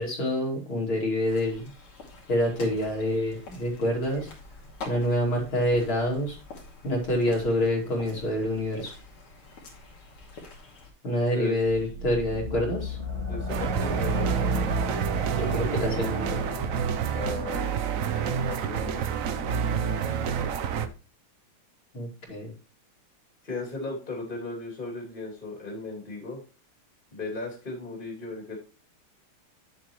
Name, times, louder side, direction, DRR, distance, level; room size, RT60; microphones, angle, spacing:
voice 1, 0.0-1.7 2.3-4.3 4.8-6.4 6.8-8.9 11.0-13.0 15.3-16.4 21.9-22.5, left 1 dB, 70° left, -2 dB, 3.6 m, -27 dB
sound 1, 1.3-10.9, left 3 dB, 85° left, 3.3 m, -46 dB
sound 2, 11.7-17.2, left 1 dB, 30° right, 3.7 m, -34 dB
voice 2, 13.2-14.4 17.1-17.8 18.1-19.1 23.4-26.4 27.1-28.6, left 3 dB, 25° left, -1 dB, 2.8 m, -36 dB
sound 3, 13.5-20.9, right 7 dB, 75° right, 0.7 m, -28 dB
9.3 x 7.7 x 3.0 m, 0.35 s
omnidirectional pair, 2.4 m